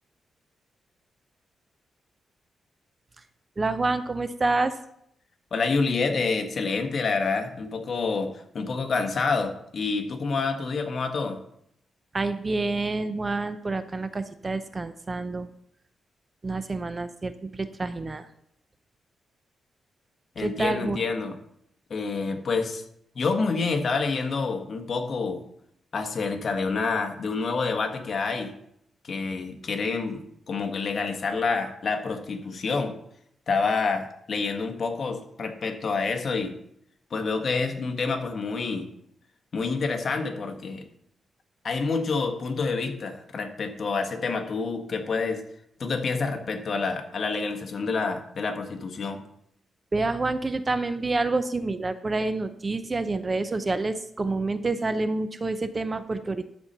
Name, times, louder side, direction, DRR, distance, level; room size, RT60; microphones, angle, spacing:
voice 1, 3.6-4.7 12.1-15.5 16.4-18.3 20.4-21.0 49.9-56.5, right 3 dB, 25° right, 11 dB, 0.6 m, -28 dB
voice 2, 5.5-11.4 20.3-21.4 21.9-22.8 23.1-25.4 25.9-28.5 29.0-32.9 33.5-36.5 37.1-38.9 39.5-40.9 41.6-45.4 45.8-49.2, left 4 dB, 50° left, 5 dB, 1.4 m, -28 dB
13.0 x 4.3 x 6.6 m, 0.73 s
wide cardioid pair, 130°, 0 cm